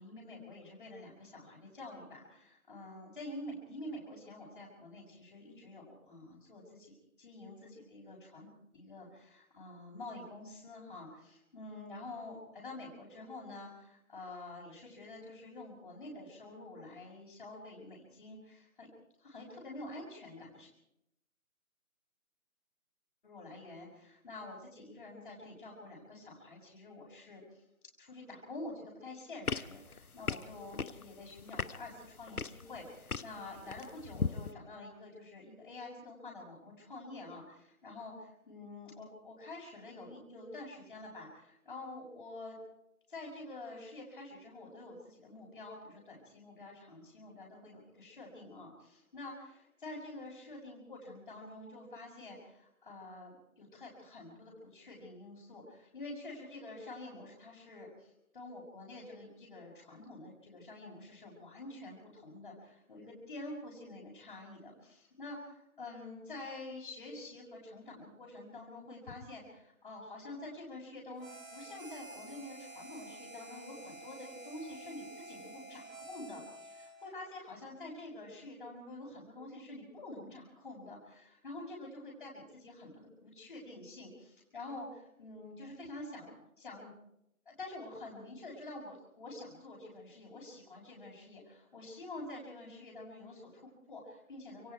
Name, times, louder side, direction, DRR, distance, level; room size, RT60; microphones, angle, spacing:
voice 1, 0.0-8.5 8.7-18.9 19.2-20.7 23.2-27.6 28.0-42.6 43.1-86.9 87.5-94.7, left 2 dB, 40° left, -6 dB, 6.1 m, -48 dB
sound 1, 29.5-34.5, left 5 dB, 85° left, 1.2 m, -39 dB
Harmonica, 71.2-77.2, right 1 dB, 70° right, 5.4 m, -50 dB
27.0 x 23.0 x 4.7 m, 0.82 s
figure-of-eight pair, 165°, 42 cm